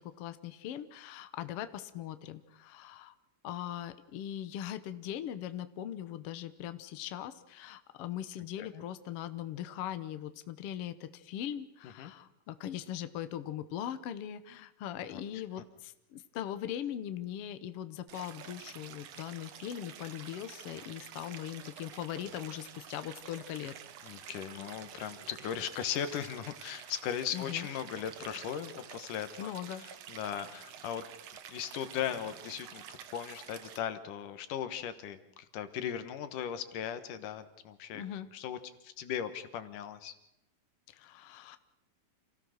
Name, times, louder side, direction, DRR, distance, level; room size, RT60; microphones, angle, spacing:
voice 1, 0.0-3.1 3.4-23.7 27.3-27.7 29.4-29.8 37.9-38.3 40.9-41.6, left 11 dB, 90° left, 11 dB, 1.3 m, -40 dB
Stream, 18.1-33.8, right 9 dB, 65° right, 1.7 m, -49 dB
voice 2, 24.0-31.1 31.5-32.8 33.1-38.0 38.3-38.6 38.8-40.1, left 9 dB, 70° left, 10 dB, 2.6 m, -38 dB
28.0 x 16.5 x 6.5 m, 0.84 s
omnidirectional pair, 4.2 m